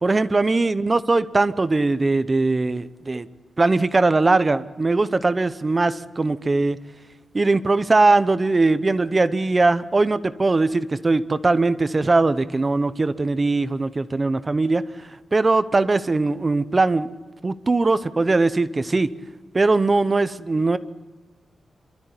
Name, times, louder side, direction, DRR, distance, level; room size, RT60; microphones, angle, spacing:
voice 1, 0.0-3.3 3.6-6.8 7.3-17.1 17.4-19.1 19.5-20.8, right 3 dB, 25° right, 13 dB, 0.8 m, -20 dB
28.0 x 13.0 x 9.9 m, 1.3 s
wide cardioid pair, 125°, 0 cm